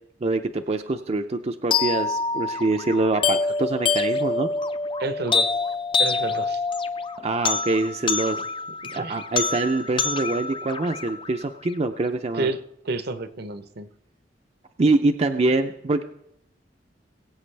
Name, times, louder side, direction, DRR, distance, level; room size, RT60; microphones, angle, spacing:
voice 1, 0.2-4.5 7.2-8.4 8.9-12.5 14.8-16.0, right 2 dB, 35° right, 6 dB, 0.5 m, -24 dB
sound 1, 1.7-11.7, left 4 dB, 30° left, 0.5 m, -26 dB
voice 2, 5.0-5.5 6.0-6.6 8.9-9.2 12.4-12.6 12.8-13.9, right 3 dB, 60° right, 11 dB, 0.8 m, -29 dB
21.5 x 8.3 x 3.3 m, 0.78 s
head